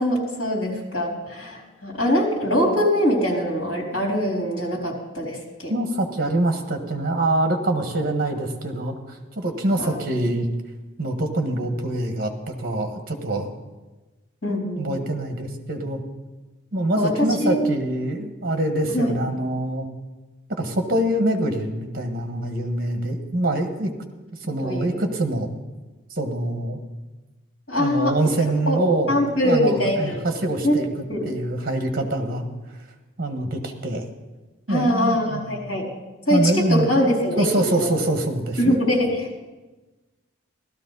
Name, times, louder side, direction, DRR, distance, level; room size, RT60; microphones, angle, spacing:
voice 1, 0.0-5.7 9.8-10.0 14.4-15.0 17.0-17.7 18.9-19.1 24.6-25.0 27.7-28.3 28.7-28.8 29.1-30.2 30.6-30.7 31.1-31.3 34.7-35.9 36.3-37.5 37.8-37.9 38.6-39.5, equal, 75° left, -2 dB, 3.7 m, -23 dB
voice 2, 5.7-10.5 11.0-12.3 12.6-13.5 14.8-16.0 16.7-19.9 20.5-23.9 24.4-25.5 26.1-26.8 27.8-30.9 31.2-32.5 33.2-34.0 34.7-35.7 36.3-36.9 37.4-38.8, right 1 dB, 45° right, 5 dB, 1.5 m, -24 dB
15.5 x 13.0 x 4.0 m, 1.2 s
head